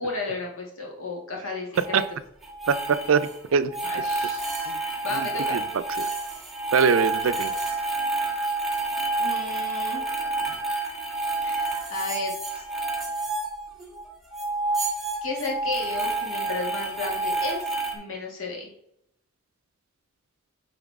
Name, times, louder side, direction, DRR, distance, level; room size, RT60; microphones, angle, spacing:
voice 1, 0.0-2.0 3.8-4.4 4.7-5.6 9.2-10.0 11.4-12.3 15.2-17.6 17.9-18.7, left 3 dB, 85° left, -1 dB, 2.1 m, -33 dB
sound 1, 1.8-2.1 2.4-3.3 3.7-14.1 14.3-18.0, right 2 dB, ahead, 1.3 m, -29 dB
voice 2, 2.7-3.7 4.7-4.8 5.5-5.6 6.0-6.1 6.7-7.5, right 6 dB, 75° right, 14 dB, 0.5 m, -22 dB
9.1 x 3.8 x 3.6 m, 0.75 s
head